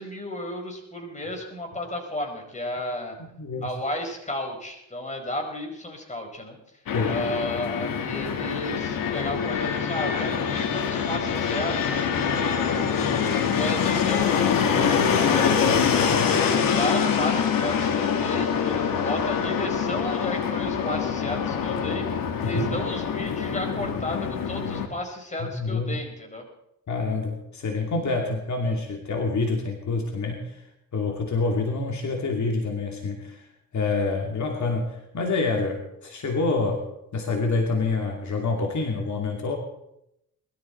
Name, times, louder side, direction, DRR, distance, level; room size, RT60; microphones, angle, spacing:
voice 1, 0.0-3.2 3.6-6.6 7.1-13.1 13.5-16.0 16.5-22.1 22.4-26.5, left 1 dB, 20° left, 3 dB, 5.1 m, -33 dB
voice 2, 3.4-3.7 6.9-7.2 15.3-15.4 22.4-22.6 25.4-26.0 26.9-30.6 30.9-33.4 33.7-36.9 37.1-39.6, left 3 dB, 60° left, 1 dB, 2.8 m, -27 dB
Fixed-wing aircraft airplane, 6.9-24.9, left 7 dB, 85° left, 2.2 m, -25 dB
21.5 x 13.5 x 4.6 m, 0.80 s
cardioid pair, 80°, 33 cm